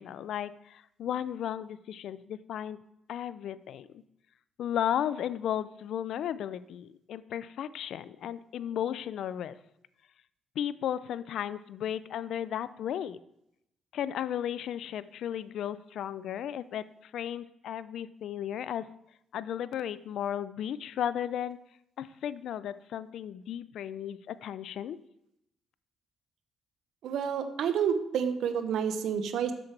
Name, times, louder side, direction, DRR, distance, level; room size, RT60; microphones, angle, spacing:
voice 1, 0.0-2.8 3.1-3.9 4.6-9.6 10.6-13.2 13.9-18.9 19.3-21.6 22.0-25.0, left 10 dB, 75° left, 16 dB, 0.3 m, -34 dB
voice 2, 27.0-29.5, right 7 dB, 75° right, 9 dB, 0.8 m, -29 dB
7.6 x 7.2 x 3.3 m, 0.79 s
cardioid pair, 90°, 0 cm